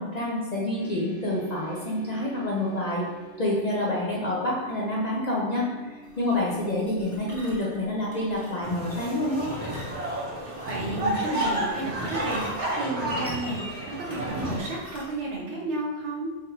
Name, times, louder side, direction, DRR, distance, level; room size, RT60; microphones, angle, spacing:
voice 1, 0.0-3.0 3.4-9.5, left 1 dB, 50° left, -5 dB, 0.5 m, -28 dB
sound 1, 0.8-9.0, right 4 dB, 85° left, 1.8 m, -47 dB
sound 2, 6.0-15.4, equal, 15° left, 0.7 m, -47 dB
sound 3, 8.6-14.6, right 1 dB, 35° right, 0.8 m, -31 dB
voice 2, 10.3-16.3, right 2 dB, 75° right, -3 dB, 1.1 m, -32 dB
3.5 x 3.4 x 2.8 m, 1.3 s
omnidirectional pair, 1.2 m